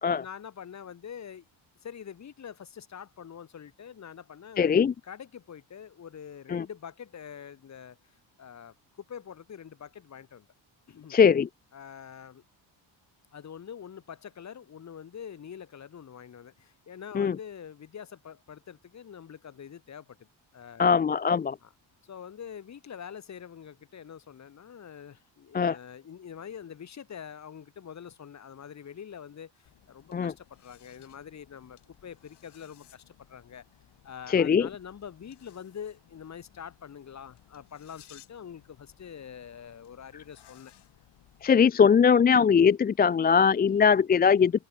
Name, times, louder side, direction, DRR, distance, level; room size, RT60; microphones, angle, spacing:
voice 1, 0.0-1.5 1.8-4.7 5.0-8.0 8.4-10.5 10.9-11.1 11.7-12.4 13.3-20.2 20.5-21.0 21.6-21.7 22.0-33.6 34.0-40.7, left 8 dB, 40° left, 2.3 m, -45 dB
voice 2, 4.6-4.9 6.5-6.7 11.1-11.5 17.1-17.4 20.8-21.6 25.5-25.8 30.1-30.3 34.3-34.7 41.4-44.5, left 6 dB, 25° left, 0.4 m, -21 dB
sound 1, 29.7-41.6, left 11 dB, 60° left, 7.3 m, -59 dB
cardioid pair, 160°, 45 cm